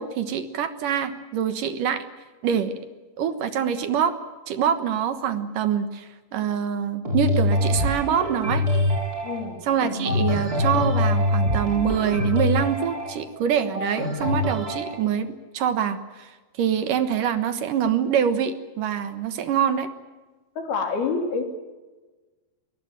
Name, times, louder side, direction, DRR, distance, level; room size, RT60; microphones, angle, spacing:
voice 1, 0.0-2.0 2.4-2.8 3.2-4.2 4.5-8.7 9.6-16.3 16.6-19.9, right 8 dB, 65° right, 10 dB, 2.7 m, -25 dB
sound 1, 7.0-15.0, left 1 dB, 25° right, 4.3 m, -24 dB
voice 2, 9.2-9.6 20.6-21.4, left 4 dB, 80° left, 5 dB, 5.1 m, -27 dB
22.5 x 20.5 x 9.0 m, 1.2 s
omnidirectional pair, 4.4 m